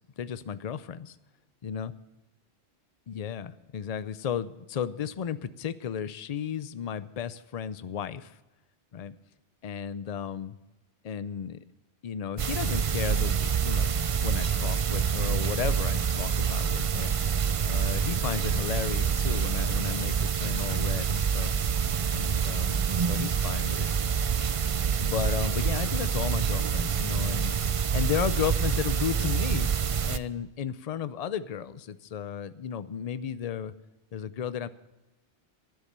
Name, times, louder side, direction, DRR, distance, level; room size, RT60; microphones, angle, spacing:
voice 1, 0.2-1.2 1.6-1.9 3.1-8.3 8.9-9.2 9.6-10.6 11.0-11.6 12.0-17.1 17.6-21.6 22.1-23.9 25.0-27.6 27.9-29.7 30.0-33.7 34.1-34.7, left 8 dB, 45° left, 14 dB, 0.5 m, -34 dB
sound 1, 12.4-30.2, right 7 dB, 60° right, 0.3 m, -27 dB
13.0 x 10.5 x 6.8 m, 1.1 s
omnidirectional pair, 1.2 m